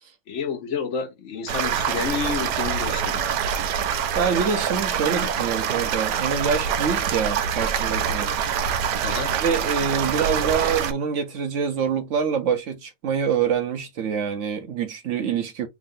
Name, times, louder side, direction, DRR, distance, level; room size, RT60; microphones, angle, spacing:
voice 1, 0.3-3.3 9.0-9.3, left 6 dB, 50° left, 1.1 m, -30 dB
Water Gush from Culvert, 1.5-10.9, right 7 dB, 85° right, 1.2 m, -25 dB
voice 2, 4.1-8.3 9.3-15.7, right 6 dB, 65° right, 0.7 m, -25 dB
3.5 x 2.5 x 3.6 m
omnidirectional pair, 1.8 m